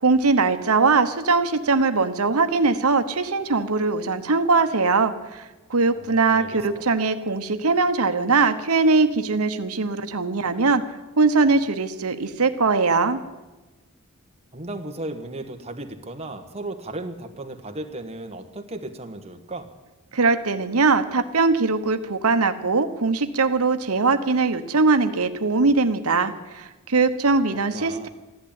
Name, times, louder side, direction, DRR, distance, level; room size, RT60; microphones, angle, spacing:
voice 1, 0.0-5.4 5.7-10.8 11.2-13.2 20.1-28.1, right 4 dB, 80° right, 9 dB, 1.0 m, -21 dB
voice 2, 5.9-6.6 14.5-19.7 27.7-28.1, right 2 dB, 30° right, 5 dB, 1.3 m, -35 dB
14.5 x 11.5 x 8.9 m, 1.1 s
head